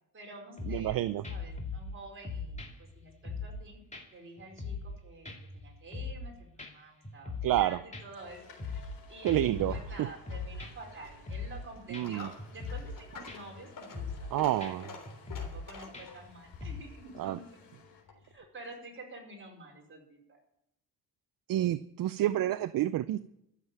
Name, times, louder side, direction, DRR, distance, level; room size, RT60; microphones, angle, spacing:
voice 1, 0.1-3.8 4.1-15.1 15.4-17.5 18.2-20.4, right 2 dB, 30° right, 0 dB, 4.9 m, -49 dB
sound 1, 0.6-0.9 1.2-1.9 2.2-3.6 3.9-4.0 4.4-5.0 5.2-6.3 6.6-6.7 7.0-7.6 7.9-9.0 9.3-10.9 11.3-11.6 11.9-12.0 12.4-13.0 13.3-13.6 13.9-14.3 14.6-14.7 15.1-15.6 15.9-16.3 16.6-16.8, left 4 dB, 15° left, 2.3 m, -40 dB
voice 2, 0.7-1.2 7.4-7.8 9.2-9.8 11.9-12.3 14.3-14.9 17.2-17.4 21.5-23.2, right 13 dB, 55° right, 14 dB, 0.5 m, -29 dB
sound 2, 8.1-18.0, left 6 dB, 85° left, 4.7 m, -58 dB
Coin (dropping), 10.8-18.4, left 4 dB, 50° left, 3.5 m, -50 dB
13.5 x 7.4 x 9.1 m, 0.79 s
cardioid pair, 125°, 40 cm